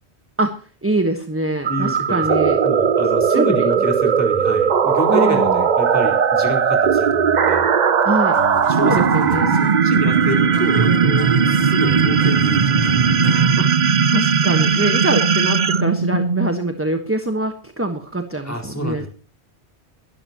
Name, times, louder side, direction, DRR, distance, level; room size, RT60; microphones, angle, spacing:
voice 1, 0.4-2.6 3.3-3.7 5.1-5.6 8.0-8.4 8.8-9.5 13.6-13.7 14.1-19.1, right 1 dB, 10° right, 6 dB, 1.3 m, -24 dB
sound 1, 1.6-16.8, right 6 dB, 45° right, 0.8 m, -17 dB
voice 2, 1.7-7.7 8.7-13.6 18.4-19.1, equal, 15° left, 1 dB, 4.3 m, -28 dB
sound 2, 8.3-13.7, left 2 dB, 70° left, 2.6 m, -31 dB
23.0 x 12.0 x 3.0 m, 0.37 s
omnidirectional pair, 1.1 m